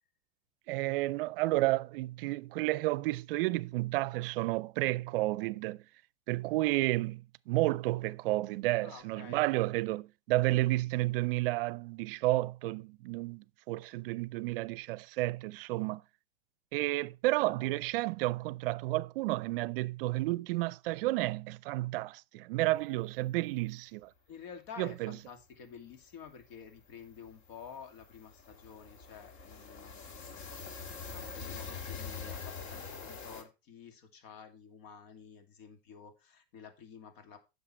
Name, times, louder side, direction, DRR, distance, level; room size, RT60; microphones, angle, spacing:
voice 1, 0.7-5.8 6.3-16.0 16.7-24.1 24.8-25.1, right 19 dB, 60° right, 0.5 m, -31 dB
voice 2, 8.8-9.4 24.3-37.4, left 7 dB, 55° left, 2.5 m, -50 dB
sound 1, 25.0-25.1 25.4-25.6 25.9-33.4, left 5 dB, 40° left, 1.9 m, -45 dB
9.8 x 6.6 x 4.3 m
hypercardioid pair, 125°, 32 cm